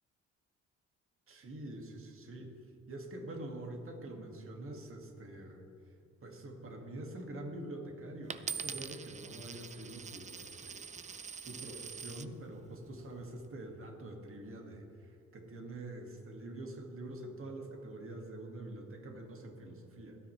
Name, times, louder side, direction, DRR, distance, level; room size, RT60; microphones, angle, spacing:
voice 1, 1.3-2.5 2.9-5.6 6.2-10.9 11.4-20.2, right 1 dB, 45° right, 2 dB, 2.2 m, -45 dB
Coin (dropping), 8.3-12.3 13.0-13.4, right 5 dB, 25° right, 0.5 m, -44 dB
24.5 x 9.9 x 3.3 m, 2.4 s
cardioid pair, 90°, 30 cm